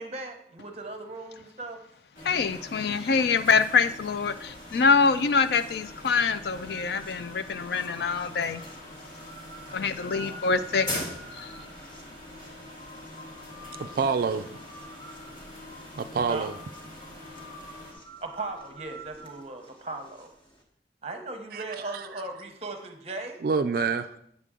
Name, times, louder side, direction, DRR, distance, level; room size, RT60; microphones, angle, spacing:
voice 1, 0.0-1.8 10.1-10.5 13.6-14.4 16.3-16.5 18.2-20.3 21.0-23.4, right 2 dB, 35° right, 6 dB, 0.9 m, -38 dB
sound 1, 2.1-17.9, left 1 dB, 45° left, 1.9 m, -43 dB
voice 2, 2.2-8.6 9.7-11.1 11.3-11.5, left 5 dB, 60° left, 12 dB, 0.4 m, -25 dB
sound 2, 4.3-20.6, right 1 dB, 30° left, 1.3 m, -48 dB
voice 3, 13.8-14.5 15.9-16.6 21.5-21.6 21.9-22.0 23.4-24.2, right 5 dB, 55° right, 9 dB, 0.3 m, -27 dB
8.3 x 6.7 x 3.7 m, 0.70 s
head